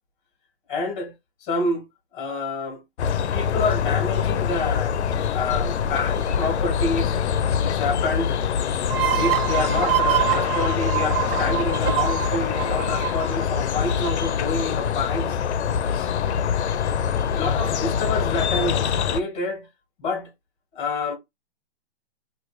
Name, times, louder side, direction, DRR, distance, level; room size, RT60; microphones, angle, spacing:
voice 1, 0.7-1.1 1.4-1.8 2.1-2.8 3.3-4.9 5.3-7.1 7.6-8.4 9.1-15.4 15.9-16.1 17.3-19.7 20.0-20.3 20.7-21.1, left 3 dB, 15° left, 1.1 m, -28 dB
sound 1, 3.0-19.2, left 7 dB, 80° left, 0.6 m, -24 dB
sound 2, 8.9-14.3, right 13 dB, 60° right, 0.5 m, -26 dB
3.1 x 2.4 x 3.1 m
hypercardioid pair, 160°, 33 cm